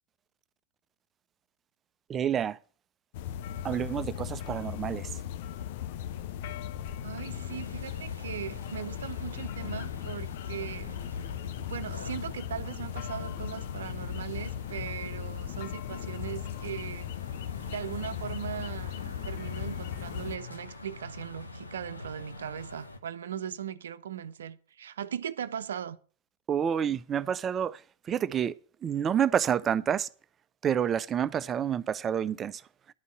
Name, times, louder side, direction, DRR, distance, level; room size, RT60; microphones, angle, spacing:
voice 1, 2.1-2.6 3.6-5.1 26.5-27.8 28.1-28.5 28.8-30.1 30.6-32.6, right 8 dB, 25° right, 0.6 m, -28 dB
sound 1, 3.1-20.4, left 10 dB, 50° left, 0.6 m, -37 dB
voice 2, 7.0-11.0 11.7-17.1 17.6-19.0 19.2-26.0, right 9 dB, 65° right, 0.7 m, -39 dB
sound 2, 7.3-23.0, left 2 dB, 80° left, 1.1 m, -46 dB
11.5 x 5.4 x 8.4 m
figure-of-eight pair, 90°, 0 cm